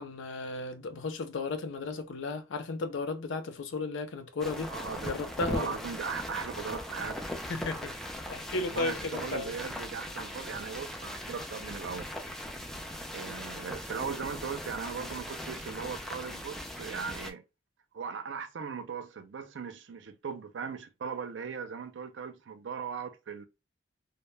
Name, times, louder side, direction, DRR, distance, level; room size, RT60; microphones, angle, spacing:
voice 1, 0.0-4.7 5.0-5.8 7.5-7.9 8.3-9.5, left 3 dB, 85° left, 0.5 m, -34 dB
DB Bucks, 4.4-17.3, left 1 dB, ahead, 0.3 m, -39 dB
voice 2, 4.7-5.1 5.4-7.3 8.6-12.1 13.1-17.4 17.9-23.5, right 6 dB, 75° right, 0.4 m, -38 dB
2.1 x 2.0 x 3.1 m
head